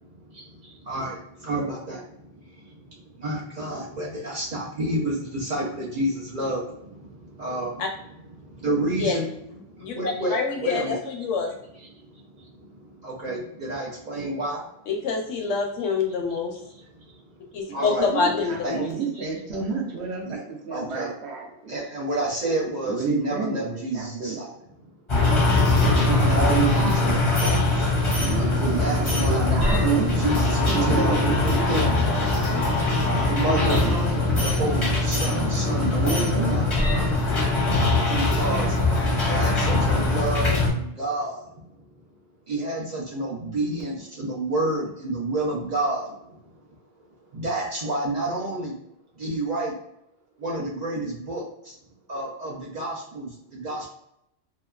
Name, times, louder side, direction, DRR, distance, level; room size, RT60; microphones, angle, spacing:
voice 1, 0.0-7.8 8.4-9.3 9.6-11.0 12.1-14.7 17.0-17.1 17.5-18.3 18.6-18.8 19.2-19.3 20.3-20.4 20.7-21.1 21.7-24.5 24.8-24.9 26.0-28.0 28.6-29.5 30.1-31.2 31.7-32.0 33.0-33.8 34.3-36.7 38.1-38.7 39.0-41.5 42.5-46.4 47.3-48.8 49.2-49.7 50.4-51.7 52.1-53.9, right 1 dB, 50° right, -5 dB, 0.6 m, -30 dB
voice 2, 9.8-11.5 14.9-16.6 17.5-18.9, left 4 dB, 80° left, 2 dB, 1.0 m, -26 dB
voice 3, 17.8-21.8 22.8-24.4 25.7-27.3 28.1-30.2 30.6-32.3 33.2-34.4 35.2-35.4 35.8-36.7 38.3-38.4, right 5 dB, 65° right, -1 dB, 0.9 m, -30 dB
sound 1, 25.1-40.7, left 2 dB, 30° left, 0.6 m, -22 dB
2.8 x 2.2 x 2.3 m, 0.78 s
omnidirectional pair, 1.2 m